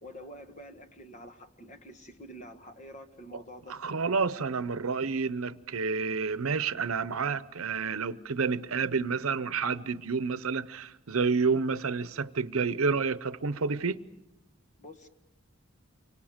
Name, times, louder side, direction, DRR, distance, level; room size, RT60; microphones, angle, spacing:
voice 1, 0.0-3.8 14.8-15.1, equal, 35° left, 1.4 m, -47 dB
voice 2, 3.7-14.0, right 5 dB, 85° right, 0.8 m, -29 dB
29.0 x 25.0 x 5.1 m
head